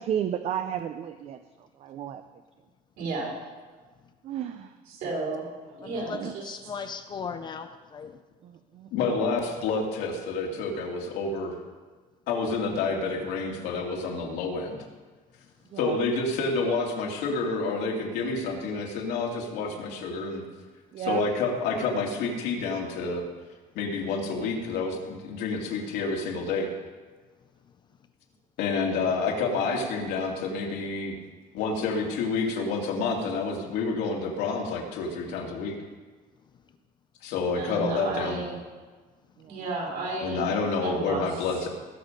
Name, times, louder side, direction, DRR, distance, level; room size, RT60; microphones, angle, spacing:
voice 1, 0.0-1.4 1.9-2.2 4.2-4.7 6.1-6.3 8.4-8.9 9.3-9.4 15.7-16.0 20.9-21.2 38.2-38.3 39.4-39.6, right 10 dB, 40° right, 9 dB, 0.5 m, -32 dB
voice 2, 3.0-3.3 4.9-5.4 5.8-6.5 37.5-38.6 39.5-40.4 40.8-41.4, right 3 dB, 65° right, -2 dB, 4.5 m, -32 dB
voice 3, 5.8-8.2, left 6 dB, 25° left, 9 dB, 0.5 m, -38 dB
voice 4, 8.9-11.6 12.3-14.8 15.8-20.4 21.0-23.2 23.7-26.7 28.6-31.2 31.5-35.8 37.2-38.4 40.2-41.7, left 4 dB, 85° left, 0 dB, 2.6 m, -29 dB
20.0 x 7.1 x 5.2 m, 1.4 s
cardioid pair, 180°, 17 cm